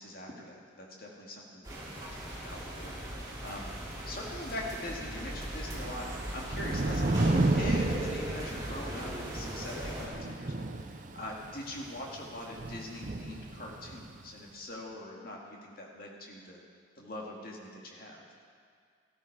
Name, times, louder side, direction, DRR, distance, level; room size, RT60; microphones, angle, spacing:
voice 1, 0.0-1.8 2.2-3.7 4.1-16.6 17.0-18.2, left 1 dB, 50° left, -2 dB, 2.2 m, -42 dB
sound 1, 1.6-10.1, right 1 dB, 20° right, 2.7 m, -39 dB
Thunder / Rain, 5.7-14.1, right 2 dB, 40° right, 0.6 m, -33 dB
14.0 x 13.0 x 4.8 m, 2.1 s
head